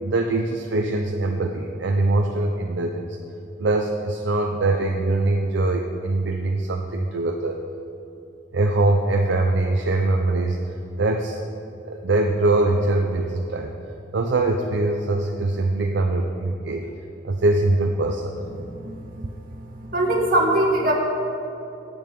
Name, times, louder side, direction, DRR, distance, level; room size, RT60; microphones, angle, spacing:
voice 1, 0.0-3.2 3.6-7.6 8.5-10.6 11.0-11.4 11.8-13.7 14.1-16.9 17.2-18.4, right 2 dB, 65° right, 2 dB, 0.6 m, -22 dB
voice 2, 19.9-20.9, right 1 dB, 45° right, -1 dB, 1.8 m, -20 dB
8.7 x 6.9 x 8.3 m, 2.9 s
head